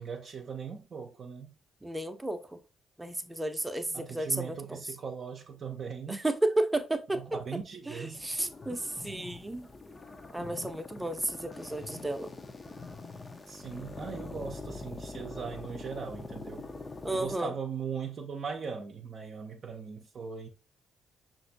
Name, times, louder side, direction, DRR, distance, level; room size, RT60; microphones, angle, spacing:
voice 1, 0.0-1.6 3.9-6.3 7.1-8.3 13.5-16.7 17.1-20.5, right 6 dB, 55° right, 0.6 m, -39 dB
voice 2, 1.8-2.6 3.0-4.8 6.1-7.2 7.9-9.7 10.3-12.3 17.0-17.5, right 1 dB, 15° right, 0.7 m, -32 dB
sound 1, 8.1-17.4, left 3 dB, 35° left, 0.6 m, -44 dB
5.7 x 2.6 x 2.6 m
hypercardioid pair, 45°, 0 cm